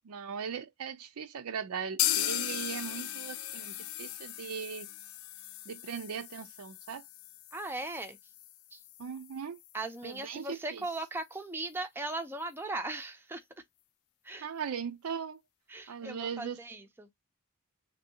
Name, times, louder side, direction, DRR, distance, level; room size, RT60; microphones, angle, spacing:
voice 1, 0.0-4.9 5.7-7.0 9.0-9.6 10.0-10.9 14.4-15.4 15.9-16.6, right 7 dB, 75° right, 0.5 m, -39 dB
sound 1, 2.0-9.7 10.0-10.1 10.4-10.5 11.0-11.1, left 13 dB, 75° left, 0.4 m, -37 dB
voice 2, 7.5-8.2 8.7-8.8 9.7-13.4 14.2-14.5 15.7-17.1, right 2 dB, 10° right, 0.5 m, -38 dB
3.2 x 2.7 x 2.6 m
head